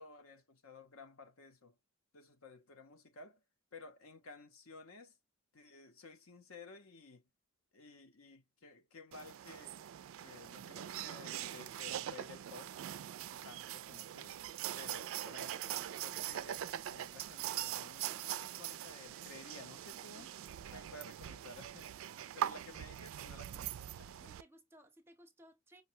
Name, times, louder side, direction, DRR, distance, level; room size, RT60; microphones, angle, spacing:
voice 1, 0.0-1.8 2.1-3.4 3.7-5.2 5.5-7.2 7.7-9.8 10.2-12.7 13.3-14.4 14.7-16.6 16.9-20.3 20.7-21.9 22.3-24.3, left 3 dB, 75° left, 0.9 m, -54 dB
sound 1, 9.1-24.4, right 11 dB, 65° right, 0.3 m, -42 dB
voice 2, 20.1-21.0 24.2-25.8, right 1 dB, 10° right, 0.6 m, -62 dB
5.3 x 2.2 x 2.7 m
head